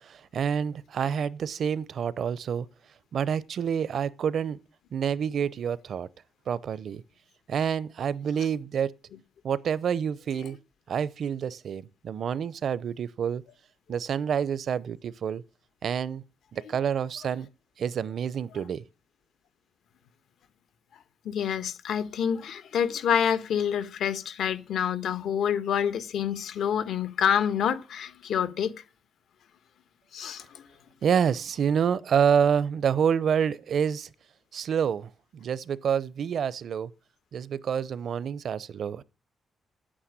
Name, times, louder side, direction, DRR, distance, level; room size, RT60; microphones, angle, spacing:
voice 1, 0.1-2.7 3.1-4.6 4.9-6.1 6.5-7.0 7.5-8.9 9.4-10.6 10.9-13.4 13.9-15.4 15.8-16.2 16.5-17.5 17.8-18.8 31.0-34.1 34.5-36.9 37.3-39.0, right 7 dB, 60° right, 0.6 m, -28 dB
voice 2, 21.2-28.7 30.1-30.7, left 8 dB, 85° left, 1.3 m, -27 dB
9.7 x 8.8 x 9.6 m
wide cardioid pair, 145°, 0 cm